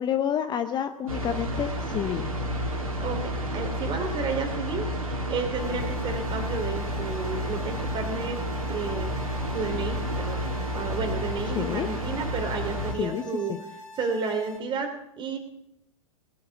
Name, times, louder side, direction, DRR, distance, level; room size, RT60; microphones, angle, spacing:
voice 1, 0.0-2.3 11.5-11.9 13.0-13.2 13.5-13.6, left 9 dB, 25° left, 9 dB, 0.8 m, -29 dB
sound 1, 1.1-12.9, equal, 85° right, 2.9 m, -31 dB
voice 2, 3.0-4.9 5.3-8.4 8.7-9.1 9.5-10.4 10.7-13.6 13.9-15.4, right 4 dB, 25° right, 5 dB, 3.0 m, -32 dB
sound 2, 5.6-14.6, left 2 dB, 70° left, 3.7 m, -45 dB
19.0 x 8.0 x 7.2 m, 0.75 s
figure-of-eight pair, 100°, 18 cm